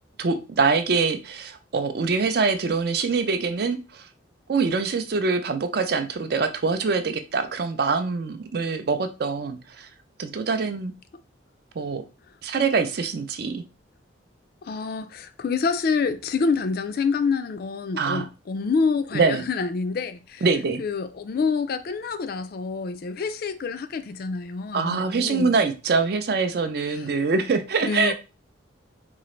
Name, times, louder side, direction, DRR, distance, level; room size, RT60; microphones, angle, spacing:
voice 1, 0.2-4.1 4.5-9.9 10.2-10.9 11.8-12.0 12.4-13.6 18.0-18.3 19.1-19.4 20.4-20.8 24.7-28.1, right 4 dB, 55° right, 0.4 m, -24 dB
voice 2, 14.6-20.5 20.8-25.5 26.9-27.1 27.8-28.1, left 4 dB, 50° left, 0.3 m, -27 dB
3.9 x 2.4 x 3.1 m
head